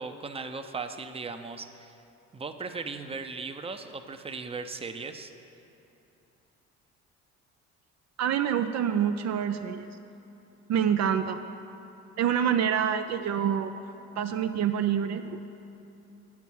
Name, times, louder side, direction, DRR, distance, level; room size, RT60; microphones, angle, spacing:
voice 1, 0.0-2.0 2.3-5.3, right 4 dB, 20° right, 7 dB, 0.6 m, -37 dB
voice 2, 8.2-9.9 10.7-11.4 12.2-13.7 14.2-15.4, right 8 dB, 55° right, 8 dB, 0.5 m, -26 dB
8.0 x 7.2 x 6.2 m, 2.9 s
supercardioid pair, 60°, 32 cm